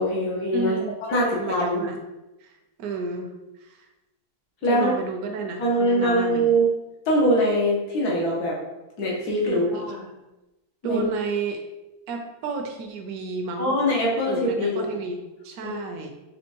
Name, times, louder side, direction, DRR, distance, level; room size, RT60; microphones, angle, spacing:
voice 1, 0.0-0.8 1.1-1.9 4.6-4.9 5.6-6.7 7.1-8.6 9.0-10.0 10.8-11.1 13.6-14.8 15.6-15.7, equal, 75° left, -3 dB, 1.5 m, -23 dB
voice 2, 0.5-0.9 1.3-2.0 2.4-2.5 2.8-3.3 3.6-3.9 4.7-6.4 9.4-9.9 10.8-11.6 12.1-13.8 14.3-16.1, right 4 dB, 70° right, 3 dB, 1.0 m, -31 dB
4.3 x 3.4 x 2.9 m, 1.0 s
omnidirectional pair, 1.7 m